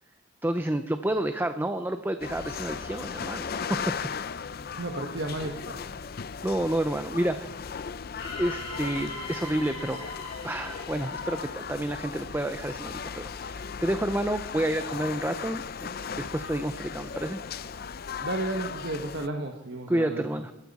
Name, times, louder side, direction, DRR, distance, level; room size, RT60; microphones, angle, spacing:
voice 1, 0.4-4.1 6.4-7.5 8.4-10.1 10.4-17.4 19.9-20.5, right 1 dB, 10° right, 9 dB, 0.6 m, -30 dB
sound 1, 2.2-19.3, left 6 dB, 50° left, 0.5 m, -37 dB
voice 2, 4.8-6.0 18.2-20.2, right 2 dB, 60° right, 3 dB, 1.3 m, -33 dB
sound 2, 8.1-12.2, left 3 dB, 25° left, 5.9 m, -41 dB
22.0 x 13.0 x 4.2 m, 0.99 s
head